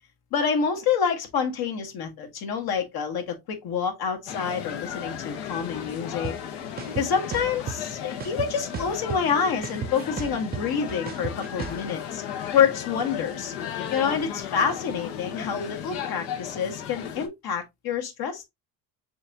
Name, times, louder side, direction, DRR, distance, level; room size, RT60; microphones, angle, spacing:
voice 1, 0.3-6.3 7.0-12.2 12.5-13.5 13.9-18.4, left 6 dB, 60° left, 1.6 m, -27 dB
sound 1, 4.3-17.3, left 8 dB, 75° left, 1.3 m, -35 dB
sound 2, 6.2-6.3 6.8-7.8 8.2-9.3 9.6-11.8, right 7 dB, 25° right, 0.4 m, -33 dB
6.8 x 2.7 x 2.8 m
cardioid pair, 115°, 41 cm